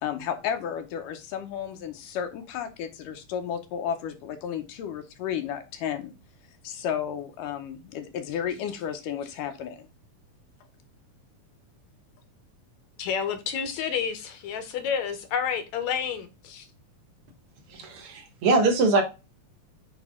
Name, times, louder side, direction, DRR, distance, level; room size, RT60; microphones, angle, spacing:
voice 1, 0.0-6.1 6.6-9.9, left 8 dB, 90° left, 6 dB, 2.6 m, -33 dB
voice 2, 13.0-16.7, left 7 dB, 70° left, 9 dB, 2.0 m, -30 dB
voice 3, 17.7-19.0, right 3 dB, 55° right, 5 dB, 2.1 m, -22 dB
8.3 x 3.6 x 3.6 m, 0.27 s
omnidirectional pair, 3.7 m